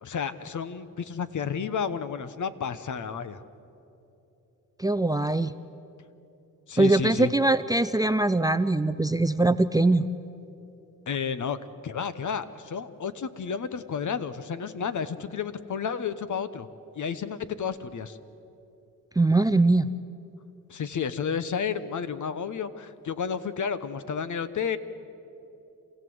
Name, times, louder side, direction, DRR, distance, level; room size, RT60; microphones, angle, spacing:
voice 1, 0.0-3.4 6.7-7.3 11.1-11.6 11.8-16.7 17.0-18.2 20.7-24.8, left 6 dB, 55° left, 13 dB, 1.1 m, -31 dB
voice 2, 4.8-5.5 6.8-10.1 19.2-19.9, right 2 dB, 10° right, 15 dB, 0.5 m, -22 dB
27.5 x 16.0 x 7.9 m, 2.9 s
cardioid pair, 75°, 37 cm